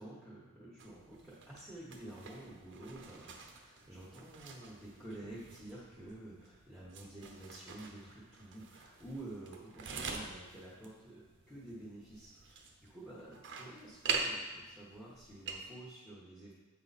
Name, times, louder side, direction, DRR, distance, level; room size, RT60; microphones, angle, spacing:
voice 1, 0.0-16.5, right 1 dB, ahead, -7 dB, 1.1 m, -50 dB
sound 1, 0.8-15.6, right 4 dB, 55° right, 0.8 m, -45 dB
8.1 x 4.8 x 4.1 m, 1.2 s
head